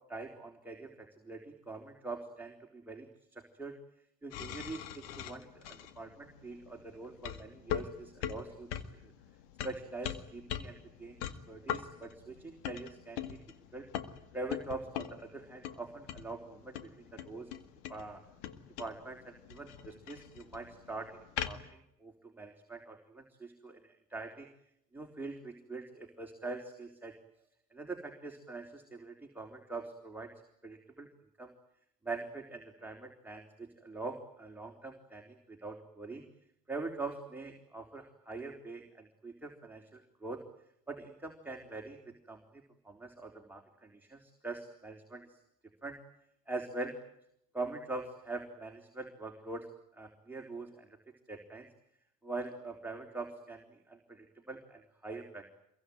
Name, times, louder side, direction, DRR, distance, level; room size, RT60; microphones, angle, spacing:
voice 1, 0.1-3.1 3.3-3.8 4.2-8.7 9.0-9.1 9.6-11.2 11.5-13.4 13.7-13.9 14.3-17.5 17.9-18.2 18.8-21.2 21.4-24.5 24.9-27.1 27.7-30.3 30.6-31.1 31.4-31.5 32.0-36.2 36.7-40.4 40.9-42.0 42.3-42.4 42.8-45.3 45.8-46.0 46.5-46.9 47.5-49.7 50.0-50.9 51.3-51.7 52.2-53.6 53.9-55.4, right 3 dB, 5° right, 1 dB, 3.9 m, -43 dB
sound 1, 4.3-21.7, left 10 dB, 70° left, 2.0 m, -43 dB
26.0 x 22.5 x 9.4 m, 0.78 s
hypercardioid pair, 65°, 38 cm